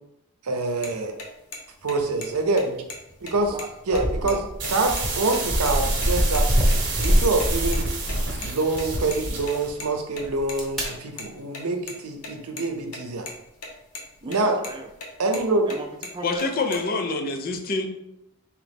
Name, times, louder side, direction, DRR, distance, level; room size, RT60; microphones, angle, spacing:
voice 1, 0.4-1.1 1.8-2.8 3.2-3.5 3.9-4.4 4.7-7.8 8.4-13.3 14.3-14.6 15.2-15.7, right 3 dB, 80° right, 5 dB, 0.6 m, -25 dB
sound 1, 0.8-0.9 1.2-1.3 1.5-1.6 1.9-2.3 2.6-2.7 2.9-3.0 3.3-4.3 4.6-4.7 5.0-5.1 5.3-5.7 6.0-6.4 6.7-7.8 8.0-10.6 10.9-12.6 12.9-13.0 13.3-13.7 13.9-14.4 14.6-15.8 16.0-16.8, left 3 dB, 80° left, 0.8 m, -37 dB
sound 2, 3.3-3.5 3.9-8.4 8.8-9.3 10.2-10.8, equal, ahead, 0.9 m, -24 dB
voice 2, 3.5-4.4 14.2-14.9 15.7-16.8, right 2 dB, 20° right, 4 dB, 0.4 m, -37 dB
sound 3, 4.6-9.7, right 4 dB, 55° right, 1.1 m, -31 dB
voice 3, 16.2-17.9, left 3 dB, 40° left, 6 dB, 0.4 m, -26 dB
3.9 x 2.9 x 3.5 m, 0.84 s
head